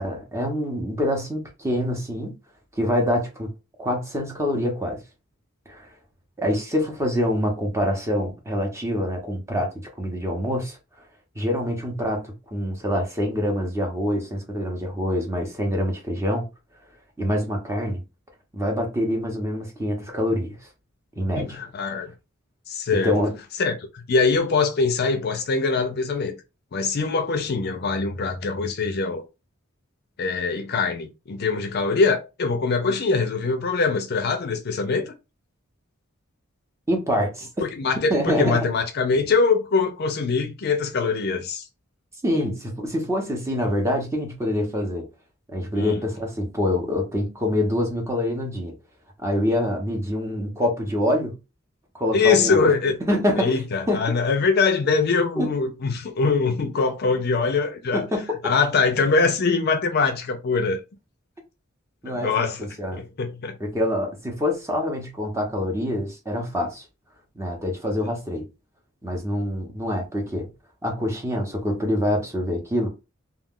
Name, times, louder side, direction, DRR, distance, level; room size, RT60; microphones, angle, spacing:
voice 1, 0.0-2.3 2.8-3.5 3.8-5.0 5.7-5.9 6.4-10.8 11.3-16.5 17.2-18.0 18.5-20.6 21.2-21.6 23.0-23.4 36.9-37.5 38.1-38.7 42.2-45.1 45.5-48.7 49.2-51.4 51.9-52.7 53.1-53.6 53.9-54.1 55.4-55.5 57.9-58.5 62.0-63.0 63.6-66.8 67.3-68.4 69.0-70.5 70.8-72.9, left 1 dB, 15° right, 0.8 m, -25 dB
voice 2, 21.4-22.1 22.7-23.2 23.6-26.4 26.7-29.2 30.2-35.1 37.6-41.7 45.7-46.0 52.1-53.0 53.4-58.0 58.4-60.8 62.1-62.7 62.9-63.6, left 4 dB, 50° left, 0.5 m, -23 dB
2.3 x 2.3 x 3.6 m
head